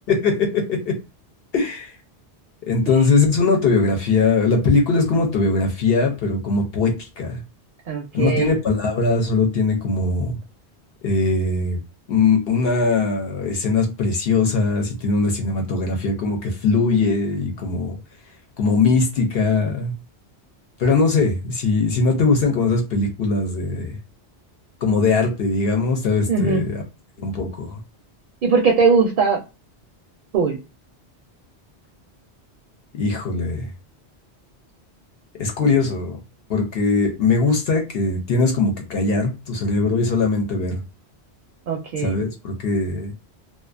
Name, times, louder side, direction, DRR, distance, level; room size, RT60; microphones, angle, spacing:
voice 1, 0.1-1.0 1.5-1.9 2.6-7.4 8.1-10.4 11.0-11.8 12.1-18.0 18.6-19.9 20.8-23.9 24.8-26.8 27.2-27.8 32.9-33.7 35.4-36.2 36.5-40.8 42.0-43.1, left 4 dB, 65° left, 0.8 m, -20 dB
voice 2, 7.9-8.5 26.3-26.6 28.4-29.4 30.3-30.6 41.7-42.2, right 5 dB, 60° right, 0.6 m, -19 dB
2.4 x 2.2 x 2.3 m
omnidirectional pair, 1.1 m